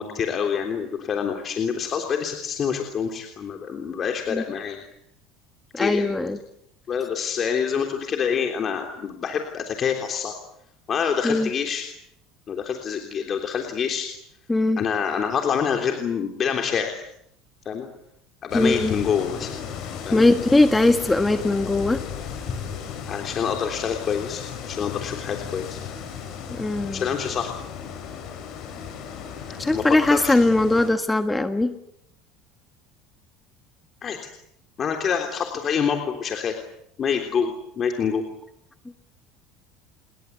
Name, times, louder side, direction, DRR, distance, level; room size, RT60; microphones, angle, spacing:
voice 1, 0.0-4.8 5.8-6.1 6.9-10.3 10.9-11.8 12.5-14.1 14.8-17.0 17.6-17.9 18.4-19.5 20.1-20.2 22.5-22.6 23.1-25.8 26.9-27.5 29.7-30.4 34.0-34.2 34.8-36.5 37.0-38.2, left 7 dB, 35° left, 4 dB, 3.4 m, -26 dB
voice 2, 5.7-6.4 11.2-11.5 14.5-14.8 18.5-18.9 20.1-22.0 26.5-27.0 29.6-31.7, left 2 dB, 10° left, 8 dB, 1.6 m, -20 dB
sound 1, 18.5-30.9, left 7 dB, 50° left, 7.7 m, -35 dB
29.0 x 21.5 x 8.4 m, 0.73 s
cardioid pair, 135°, 0 cm